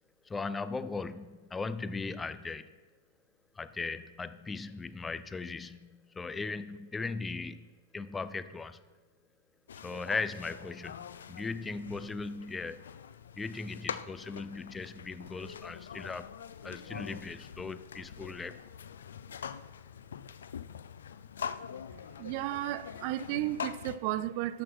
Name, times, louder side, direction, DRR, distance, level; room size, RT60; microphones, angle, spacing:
voice 1, 0.3-2.7 3.6-7.7 7.9-8.8 9.8-12.8 13.4-16.3 16.6-18.6, left 4 dB, 10° left, 0.5 m, -38 dB
sound 1, 9.7-24.0, left 7 dB, 90° left, 0.4 m, -44 dB
voice 2, 22.2-24.6, right 15 dB, 50° right, 0.5 m, -33 dB
12.5 x 6.0 x 4.8 m
hypercardioid pair, 135°, 0 cm